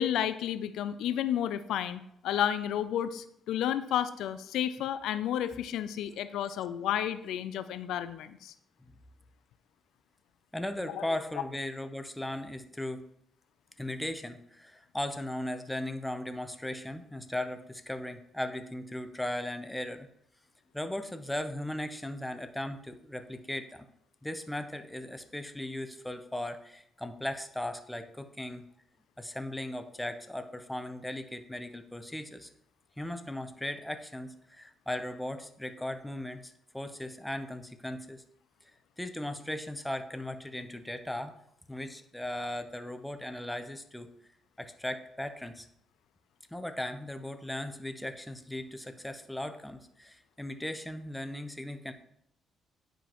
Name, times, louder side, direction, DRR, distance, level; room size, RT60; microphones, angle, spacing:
voice 1, 0.0-8.5 10.9-11.0, left 10 dB, 85° left, 13 dB, 0.3 m, -31 dB
voice 2, 10.5-13.1 13.8-20.1 20.7-23.9 24.2-28.7 29.2-32.5 33.0-38.2 39.0-41.3 41.7-44.1 44.6-45.7 46.5-51.9, left 1 dB, 5° left, 8 dB, 0.7 m, -37 dB
9.7 x 5.1 x 3.0 m, 0.73 s
cardioid pair, 90°, 0 cm